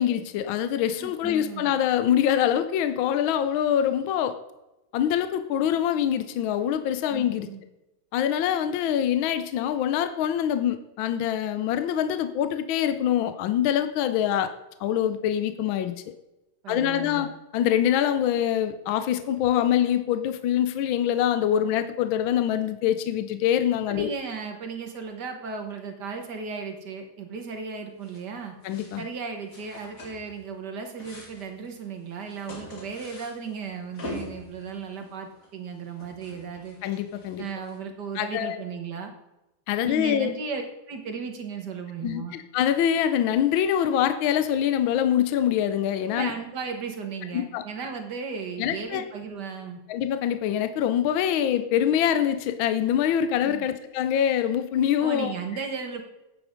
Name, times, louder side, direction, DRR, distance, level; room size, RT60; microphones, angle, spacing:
voice 1, 0.0-4.3 4.9-7.5 8.1-14.5 14.8-15.9 16.7-17.3 17.5-24.1 28.6-29.0 36.8-37.4 38.1-38.6 39.7-40.3 42.0-46.3 47.3-47.6 48.6-49.0 49.9-55.3, left 10 dB, 75° left, 10 dB, 1.4 m, -24 dB
voice 2, 1.0-1.7 7.1-7.6 16.6-17.3 23.9-28.5 29.0-36.8 37.4-39.1 39.8-40.6 40.9-42.3 46.1-49.8 53.4-53.7 55.0-56.0, right 5 dB, 55° right, 4 dB, 1.7 m, -35 dB
sound 1, 28.0-28.3 28.6-29.1 29.5-30.5 30.8-37.8, left 2 dB, 45° left, 2.1 m, -44 dB
8.6 x 8.5 x 5.1 m, 0.95 s
omnidirectional pair, 2.3 m